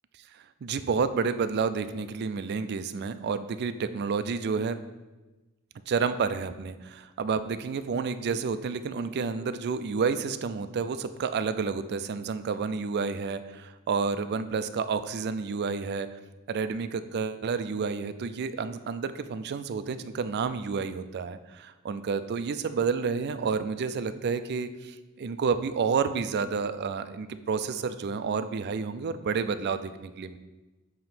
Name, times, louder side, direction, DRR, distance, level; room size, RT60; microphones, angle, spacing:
voice 1, 0.3-4.8 5.9-16.1 16.5-30.4, right 5 dB, 50° right, 11 dB, 0.3 m, -30 dB
7.1 x 2.9 x 5.8 m, 1.1 s
head